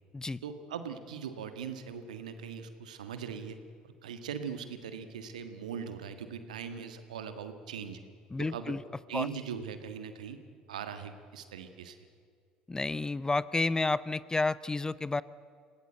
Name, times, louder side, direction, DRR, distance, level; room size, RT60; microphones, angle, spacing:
voice 1, 0.4-3.6 4.0-8.0 8.4-8.7 9.1-10.4 10.7-12.0, right 7 dB, 80° right, 9 dB, 1.7 m, -40 dB
voice 2, 8.3-8.8 9.1-9.3 12.7-15.2, left 3 dB, 15° left, 19 dB, 0.7 m, -30 dB
27.0 x 17.5 x 7.9 m, 2.2 s
figure-of-eight pair, 60°, 4 cm